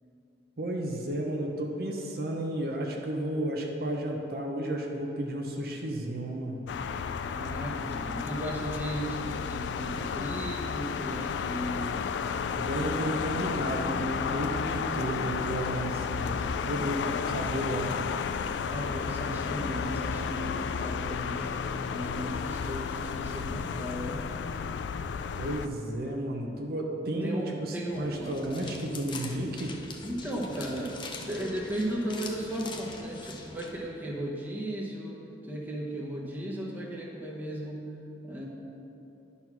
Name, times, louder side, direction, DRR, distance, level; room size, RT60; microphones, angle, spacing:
voice 1, 0.6-6.6 12.6-16.3 16.7-18.1 25.4-29.7, right 1 dB, 60° right, 0 dB, 0.8 m, -32 dB
sound 1, 6.7-25.7, left 6 dB, 80° left, 0.3 m, -32 dB
voice 2, 7.3-12.0 18.7-21.6 21.9-24.3 27.2-28.3 30.0-35.2 35.4-37.9 38.2-38.4, equal, 10° right, -3 dB, 1.0 m, -35 dB
sound 2, 27.9-33.7, left 3 dB, 25° left, 0.6 m, -43 dB
10.5 x 4.2 x 5.9 m, 3.0 s
head